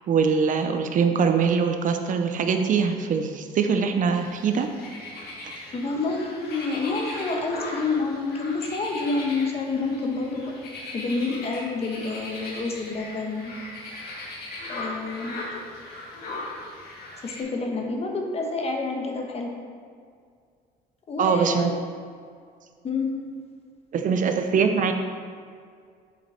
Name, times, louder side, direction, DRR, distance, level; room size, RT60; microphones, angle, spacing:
voice 1, 0.1-4.7 5.4-5.6 21.2-21.7 23.9-24.9, right 6 dB, 50° right, 6 dB, 0.6 m, -23 dB
sound 1, 4.1-17.4, left 2 dB, 70° left, 1.6 m, -38 dB
voice 2, 5.7-10.5 10.9-13.5 14.7-15.4 17.2-19.5 21.1-21.7 22.8-23.1, left 3 dB, 35° left, 1 dB, 1.2 m, -28 dB
7.7 x 5.1 x 4.3 m, 2.1 s
cardioid pair, 110°, 17 cm